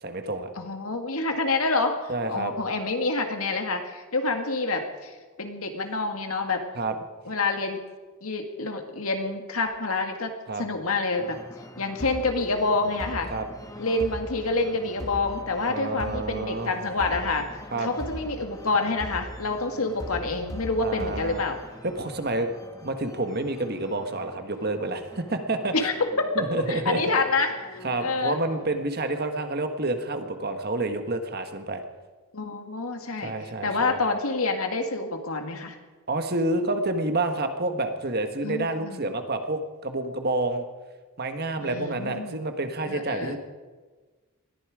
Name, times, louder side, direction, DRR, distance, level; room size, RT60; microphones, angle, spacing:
voice 1, 0.0-0.5 2.1-2.5 6.7-6.9 10.5-10.6 13.3-13.5 15.7-16.7 17.7-17.9 20.8-21.4 21.8-22.5 22.8-25.7 26.3-27.0 27.8-31.8 33.2-33.9 36.1-40.7 41.2-43.4, right 2 dB, 45° right, 7 dB, 1.4 m, -29 dB
voice 2, 0.6-2.0 2.3-6.7 7.3-7.8 8.2-10.3 10.6-11.4 11.8-13.3 13.8-21.6 25.7-25.9 26.7-28.4 32.3-33.3 33.6-35.8 38.4-39.0 41.6-42.4 42.8-43.4, left 3 dB, 80° left, 5 dB, 2.1 m, -27 dB
sound 1, 11.2-28.9, left 1 dB, 15° left, 1.3 m, -41 dB
20.5 x 14.0 x 5.0 m, 1.3 s
head